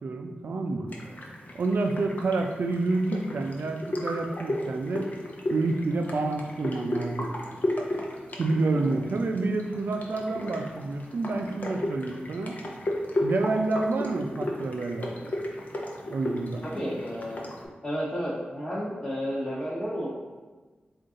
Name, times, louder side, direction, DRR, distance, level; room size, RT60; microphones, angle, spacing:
voice 1, 0.0-0.9 1.5-5.1 5.5-7.3 8.4-12.6 13.2-15.1 16.1-16.6, right 3 dB, 70° right, 5 dB, 0.4 m, -28 dB
sound 1, 0.9-17.7, left 1 dB, 50° left, 0.7 m, -34 dB
voice 2, 16.6-17.5 17.8-20.1, equal, 20° left, -9 dB, 1.0 m, -32 dB
3.7 x 2.5 x 3.7 m, 1.3 s
cardioid pair, 65°, 3 cm